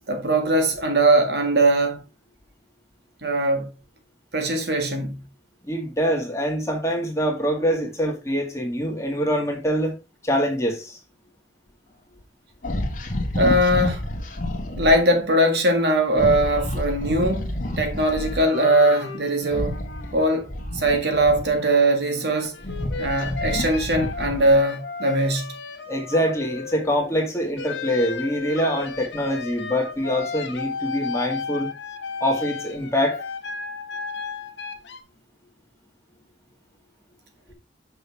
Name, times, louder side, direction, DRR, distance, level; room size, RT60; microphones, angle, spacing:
voice 1, 0.1-2.0 3.2-3.7 4.3-5.2 13.4-14.2 14.7-19.8 20.1-20.5 20.7-22.6 23.0-25.5, right 1 dB, 60° right, 1.9 m, -21 dB
voice 2, 5.6-9.9 10.2-11.0 25.9-31.7 32.2-33.2, equal, 15° left, 2.0 m, -24 dB
sound 1, 12.6-15.0 16.1-18.5 19.4-21.7 22.3-24.7, left 1 dB, 45° left, 1.5 m, -29 dB
sound 2, 18.0-20.9 21.3-27.1 27.6-35.0, left 5 dB, 85° left, 1.3 m, -35 dB
6.7 x 6.2 x 3.5 m
head